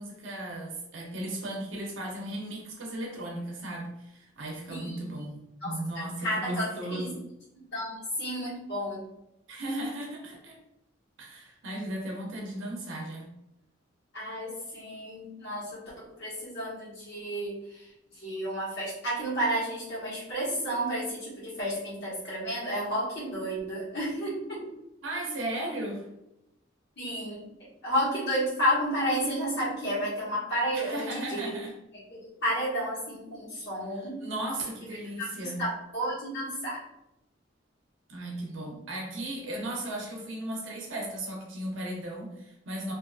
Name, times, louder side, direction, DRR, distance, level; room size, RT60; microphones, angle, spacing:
voice 1, 0.0-7.2 9.5-10.6 11.2-13.3 25.0-26.1 30.7-31.8 33.9-35.6 38.1-42.9, right 1 dB, 85° right, 0 dB, 0.6 m, -36 dB
voice 2, 4.7-5.1 5.6-5.7 6.2-7.1 7.7-9.0 14.1-15.8 16.2-17.8 18.2-24.6 27.0-27.4 27.8-31.5 32.1-34.2 35.2-36.8, equal, 60° left, -8 dB, 1.2 m, -31 dB
2.5 x 2.4 x 2.3 m, 0.87 s
head